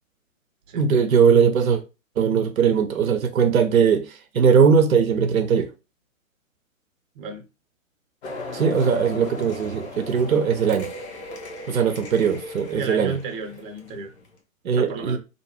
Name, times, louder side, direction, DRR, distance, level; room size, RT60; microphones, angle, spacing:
voice 1, 0.7-1.8 2.2-5.7 8.5-10.9 11.7-13.1 14.6-15.2, right 6 dB, 90° right, 0.6 m, -20 dB
sound 1, 8.2-14.4, left 2 dB, 55° left, 0.9 m, -37 dB
voice 2, 12.8-14.1 14.7-15.2, right 4 dB, 40° right, 0.7 m, -33 dB
2.7 x 2.2 x 2.8 m
hypercardioid pair, 125°, 41 cm